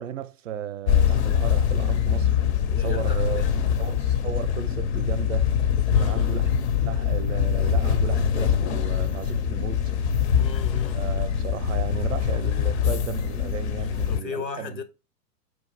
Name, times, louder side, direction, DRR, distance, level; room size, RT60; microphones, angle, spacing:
voice 1, 0.0-2.3 2.8-3.4 3.8-5.6 6.0-6.5 6.8-10.1 10.9-14.8, right 9 dB, 50° right, 0.5 m, -35 dB
sound 1, 0.9-14.2, left 8 dB, 45° left, 0.5 m, -23 dB
voice 2, 2.7-3.9 5.9-6.3 10.4-11.0 14.1-14.8, left 4 dB, 90° left, 1.0 m, -37 dB
4.5 x 2.4 x 4.5 m
figure-of-eight pair, 110°, 49 cm